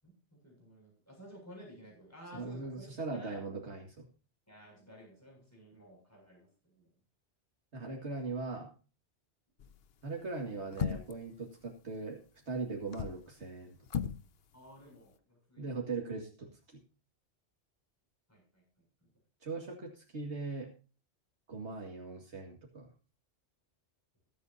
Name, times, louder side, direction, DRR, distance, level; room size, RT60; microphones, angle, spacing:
voice 1, 0.0-3.4 4.5-6.9 14.5-15.7 18.3-18.6 19.0-19.1, equal, 15° left, -2 dB, 7.7 m, -54 dB
voice 2, 2.3-4.1 7.7-8.7 10.0-12.2 12.5-14.0 15.6-16.8 19.4-20.7 21.5-22.9, right 3 dB, 75° right, 1 dB, 2.3 m, -40 dB
sound 1, 9.6-9.9 10.7-11.3 12.7-13.2 13.9-14.3 14.5-14.6, left 8 dB, 60° left, 0.9 m, -36 dB
21.5 x 8.4 x 2.7 m, 0.35 s
omnidirectional pair, 1.2 m